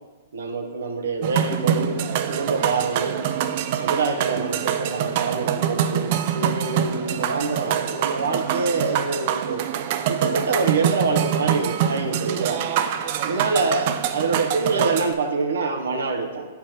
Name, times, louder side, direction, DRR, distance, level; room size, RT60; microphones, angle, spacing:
voice 1, 0.3-2.0 2.3-3.2 3.7-9.7 10.1-12.6 13.2-16.5, right 4 dB, 80° right, 4 dB, 0.7 m, -26 dB
sound 1, 1.2-15.1, right 9 dB, 50° right, 0.3 m, -25 dB
7.6 x 3.4 x 4.2 m, 1.4 s
hypercardioid pair, 135°, 0 cm